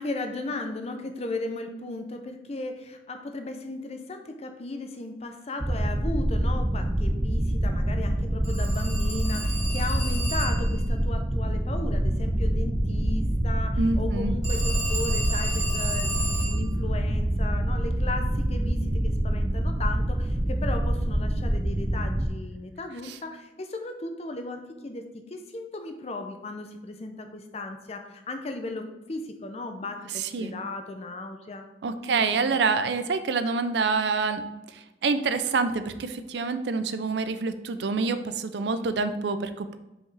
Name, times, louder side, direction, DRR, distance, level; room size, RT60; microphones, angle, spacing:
voice 1, 0.0-31.6 32.0-32.2 32.5-32.6, left 2 dB, 35° left, 5 dB, 0.7 m, -36 dB
sound 1, 5.6-22.3, right 1 dB, 15° right, 0.5 m, -26 dB
Telephone, 8.4-10.8 14.4-16.6, right 1 dB, 15° left, 1.5 m, -33 dB
voice 2, 13.8-14.4 23.0-23.1 30.2-30.5 31.8-34.4 35.0-39.8, right 4 dB, 75° right, 10 dB, 0.5 m, -27 dB
5.7 x 5.2 x 3.3 m, 1.0 s
head